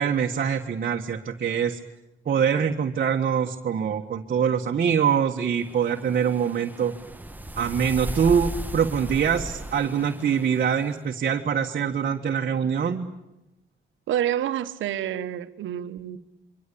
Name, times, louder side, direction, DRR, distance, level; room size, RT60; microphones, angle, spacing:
voice 1, 0.0-1.8 2.3-7.0 7.6-13.1, right 7 dB, 50° right, 1.6 m, -24 dB
sound 1, 5.6-10.9, right 1 dB, 10° right, 1.2 m, -36 dB
voice 2, 14.1-16.2, right 11 dB, 80° right, 1.4 m, -28 dB
27.5 x 24.0 x 8.6 m
cardioid pair, 90°, 20 cm